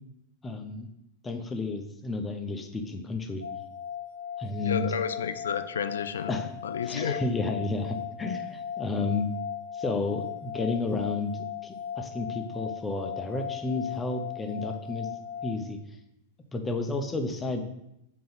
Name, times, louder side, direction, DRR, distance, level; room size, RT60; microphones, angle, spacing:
voice 1, 0.4-0.9 1.2-3.4 4.4-4.9 6.3-6.5 6.8-9.3 9.7-15.1 15.4-15.8 16.5-17.7, left 3 dB, 15° left, 6 dB, 0.7 m, -31 dB
sound 1, 3.4-15.5, left 9 dB, 85° left, 0.8 m, -37 dB
voice 2, 4.6-6.3 6.6-7.2, left 7 dB, 65° left, 11 dB, 0.4 m, -31 dB
4.6 x 3.9 x 5.7 m, 0.83 s
figure-of-eight pair, 90°, 0 cm